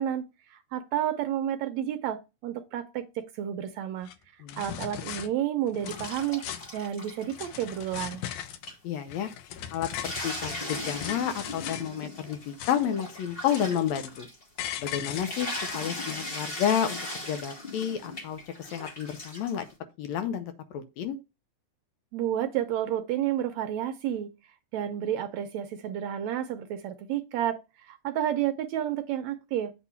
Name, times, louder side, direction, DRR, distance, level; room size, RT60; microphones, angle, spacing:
voice 1, 0.0-4.1 4.4-6.4 6.7-8.2 22.1-24.3 24.7-29.7, right 11 dB, 75° right, 1.7 m, -31 dB
sound 1, 4.0-4.1 4.5-5.3 5.7-6.8 7.2-8.7 9.1-11.9 12.3-13.0 13.3-14.2 14.6-16.1, left 10 dB, 90° left, 2.2 m, -39 dB
sound 2, 5.8-8.4 8.7-8.8 9.3-9.4 9.7-19.7, left 1 dB, 35° left, 0.8 m, -39 dB
voice 2, 8.8-9.3 9.7-14.3 14.8-19.7 20.0-21.2, left 9 dB, 75° left, 1.8 m, -31 dB
8.3 x 2.9 x 5.5 m
omnidirectional pair, 3.5 m